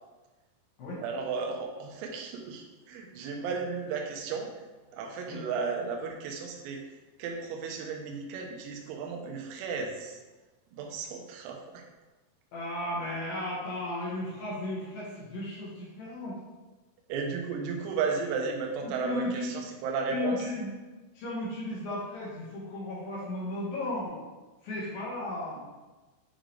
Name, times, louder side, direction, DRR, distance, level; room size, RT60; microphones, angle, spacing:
voice 1, 1.0-4.5 4.9-6.8 7.2-10.2 10.7-11.8 17.1-20.5, right 5 dB, 85° right, 2 dB, 3.6 m, -34 dB
voice 2, 12.5-16.4 18.8-19.5 20.1-20.7 21.1-24.2 24.6-25.7, left 1 dB, 60° left, -7 dB, 2.5 m, -35 dB
9.9 x 3.8 x 3.3 m, 1.2 s
omnidirectional pair, 6.0 m